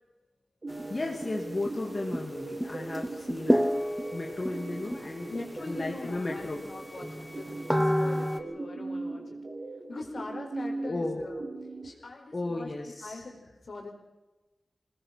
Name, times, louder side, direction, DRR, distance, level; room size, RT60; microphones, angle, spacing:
sound 1, 0.6-11.9, right 2 dB, 50° right, 4.8 m, -40 dB
sound 2, 0.7-1.3 1.7-1.8 2.1-2.4 2.6-4.5 4.9-5.4 5.8-5.9 6.3-6.4 7.0-8.4, equal, 5° right, 1.3 m, -29 dB
voice 1, 0.9-3.7 4.1-6.7 10.8-11.2 12.3-13.2, left 2 dB, 35° left, 0 dB, 2.5 m, -35 dB
Wind instrument woodwind instrument, 3.7-8.6, left 1 dB, 15° left, 3.7 m, -54 dB
voice 2, 5.3-9.4 9.9-11.4 11.8-12.7 13.0-13.9, left 2 dB, 65° left, 2 dB, 4.5 m, -42 dB
23.5 x 19.0 x 6.0 m, 1.1 s
wide cardioid pair, 105°, 0 cm